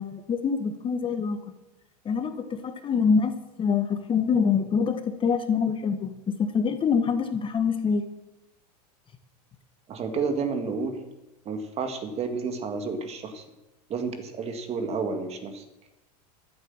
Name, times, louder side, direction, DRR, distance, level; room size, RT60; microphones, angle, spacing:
voice 1, 0.0-1.4 2.0-8.0, left 6 dB, 25° left, 8 dB, 1.4 m, -25 dB
voice 2, 9.9-11.0 11.5-13.4 13.9-15.6, right 4 dB, 30° right, 7 dB, 2.1 m, -30 dB
13.5 x 8.2 x 7.2 m, 0.99 s
hypercardioid pair, 115°, 20 cm